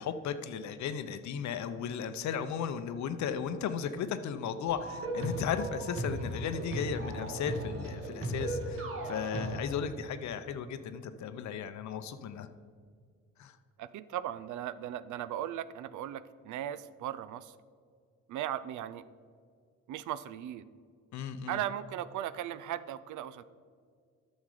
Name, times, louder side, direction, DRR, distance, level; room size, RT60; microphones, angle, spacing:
voice 1, 0.0-12.5 13.4-13.6 21.1-21.6, left 7 dB, 70° left, 11 dB, 0.6 m, -35 dB
sound 1, 4.7-9.6, right 1 dB, 45° right, 1.5 m, -36 dB
voice 2, 13.8-17.5 18.3-19.0 19.9-20.7 21.5-23.4, right 11 dB, 80° right, 15 dB, 0.5 m, -37 dB
9.3 x 6.3 x 4.8 m, 2.1 s
cardioid pair, 90°, 30 cm